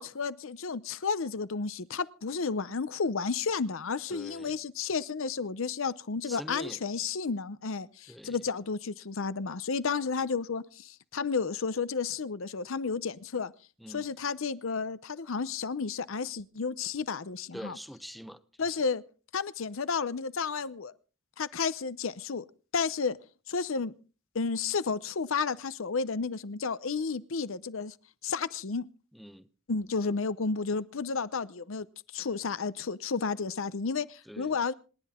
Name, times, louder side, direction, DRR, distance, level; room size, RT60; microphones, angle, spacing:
voice 1, 0.0-13.5 13.9-17.7 18.6-19.0 19.3-20.9 21.4-22.4 22.7-23.2 23.5-23.9 24.3-27.9 28.2-28.9 29.7-31.9 32.1-34.7, left 5 dB, 70° left, 0.7 m, -32 dB
voice 2, 4.1-4.6 6.2-6.8 8.1-8.4 13.8-14.1 17.5-18.9 29.1-29.5 34.2-34.6, equal, ahead, 0.8 m, -45 dB
26.5 x 10.5 x 3.6 m
head